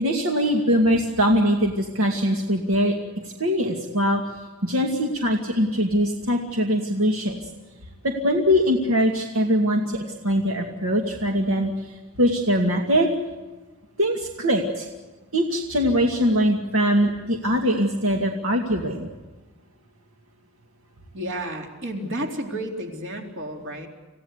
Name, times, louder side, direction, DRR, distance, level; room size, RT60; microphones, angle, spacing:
voice 1, 0.0-2.9 3.2-4.2 4.6-7.4 8.0-13.1 14.0-14.9 15.3-19.1, equal, 80° right, 2 dB, 2.4 m, -22 dB
voice 2, 21.1-23.9, right 1 dB, 60° right, 2 dB, 3.9 m, -31 dB
27.5 x 16.5 x 8.2 m, 1.3 s
head